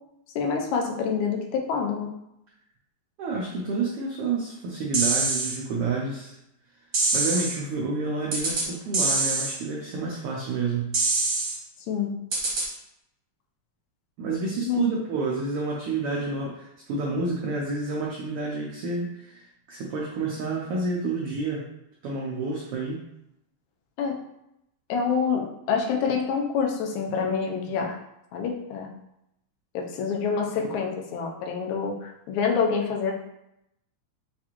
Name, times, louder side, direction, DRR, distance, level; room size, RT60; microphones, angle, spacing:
voice 1, 0.4-2.1 11.9-12.1 14.7-14.8 24.0-24.2 24.9-28.0 28.3-28.9 29.7-33.1, left 6 dB, 85° left, 1 dB, 2.0 m, -27 dB
voice 2, 3.2-6.3 7.1-11.0 14.2-21.6 22.0-23.0, right 3 dB, 85° right, -3 dB, 1.2 m, -29 dB
sound 1, 4.9-5.6 6.9-7.6 8.3-8.7 8.9-9.6 10.9-11.6 12.3-12.7, right 3 dB, 55° right, 1.1 m, -24 dB
6.3 x 2.4 x 2.9 m, 0.82 s
omnidirectional pair, 3.4 m